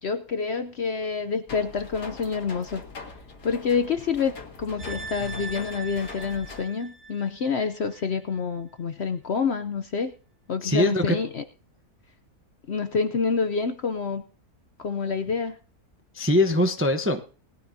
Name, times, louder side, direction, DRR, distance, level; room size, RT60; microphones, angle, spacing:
voice 1, 0.0-2.8 3.4-10.1 10.5-11.4 12.7-14.2 14.8-15.6, left 5 dB, 55° left, 9 dB, 0.8 m, -27 dB
sound 1, 1.5-6.6, left 4 dB, 85° left, 2.5 m, -42 dB
sound 2, 4.8-8.0 8.4-8.5, right 2 dB, 60° right, 2.3 m, -40 dB
voice 2, 10.6-11.2 16.1-17.2, left 1 dB, 15° right, 6 dB, 0.6 m, -22 dB
19.5 x 13.0 x 2.7 m, 0.37 s
omnidirectional pair, 1.7 m